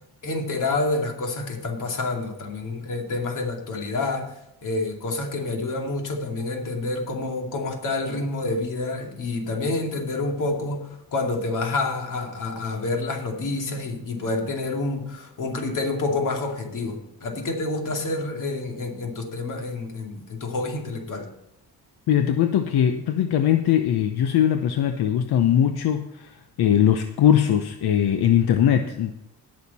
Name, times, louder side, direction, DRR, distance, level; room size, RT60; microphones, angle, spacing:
voice 1, 0.2-4.3 4.6-21.3, left 2 dB, 55° left, 1 dB, 2.5 m, -28 dB
voice 2, 22.1-26.3 26.6-29.1, left 10 dB, 80° left, 7 dB, 0.8 m, -20 dB
18.5 x 6.6 x 4.2 m, 0.85 s
wide cardioid pair, 160°, 37 cm